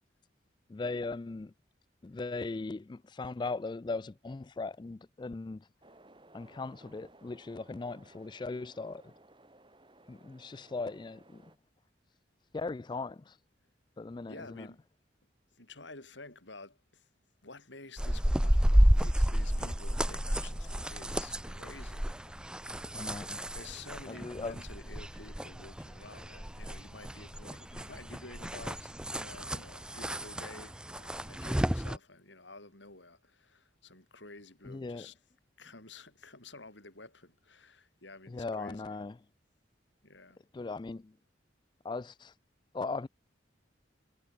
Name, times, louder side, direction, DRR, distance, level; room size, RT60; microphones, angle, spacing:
voice 1, 0.7-1.5 2.0-5.7 6.3-9.1 10.1-11.4 12.5-13.4 14.0-14.7 22.9-23.5 24.1-24.6 34.6-35.1 38.3-39.2 40.5-41.1 41.8-42.3 42.7-43.1, left 3 dB, 25° left, 0.3 m, -38 dB
sound 1, 5.8-11.6, right 2 dB, 25° right, 5.8 m, -59 dB
voice 2, 14.3-14.8 15.6-17.0 17.4-22.4 23.5-35.2 35.6-39.0 40.0-40.4, left 3 dB, 75° left, 6.0 m, -51 dB
sound 2, 18.0-32.0, equal, 5° right, 0.7 m, -31 dB
head